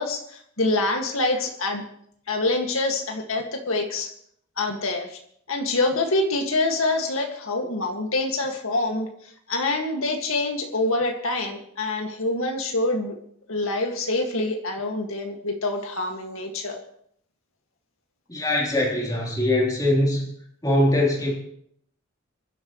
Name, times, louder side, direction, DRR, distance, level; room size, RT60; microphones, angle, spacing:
voice 1, 0.0-1.8 2.3-4.1 4.6-5.2 5.5-9.1 9.5-13.1 13.5-16.8, left 2 dB, 90° left, 2 dB, 2.0 m, -26 dB
voice 2, 18.3-20.2 20.6-21.4, left 1 dB, 20° left, -3 dB, 3.6 m, -22 dB
26.5 x 12.0 x 3.2 m, 0.68 s
head